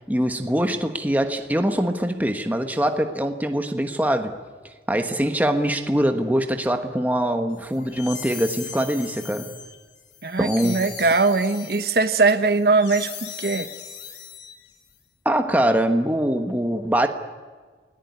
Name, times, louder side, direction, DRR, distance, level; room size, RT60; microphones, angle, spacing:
voice 1, 0.1-4.4 4.9-9.5 10.4-10.8 15.2-17.1, right 1 dB, 10° right, 1.3 m, -23 dB
sound 1, 7.6-14.9, left 7 dB, 85° left, 3.5 m, -38 dB
voice 2, 10.2-13.7, right 3 dB, 60° right, 1.1 m, -21 dB
28.5 x 18.5 x 9.6 m
head